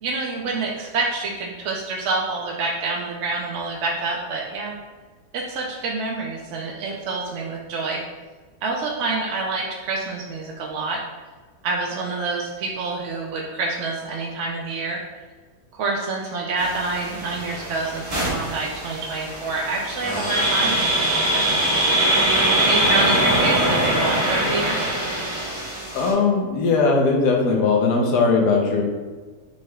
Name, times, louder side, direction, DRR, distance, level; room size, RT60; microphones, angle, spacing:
voice 1, 0.0-4.8 5.3-8.0 8.6-11.0 11.6-15.0 15.7-22.0 22.6-24.9, right 3 dB, 65° right, -1 dB, 0.7 m, -27 dB
sound 1, 16.6-26.1, right 1 dB, 20° right, 1.2 m, -22 dB
voice 2, 25.9-28.8, left 4 dB, 80° left, 1 dB, 1.3 m, -19 dB
6.5 x 3.5 x 2.3 m, 1.3 s
omnidirectional pair, 1.8 m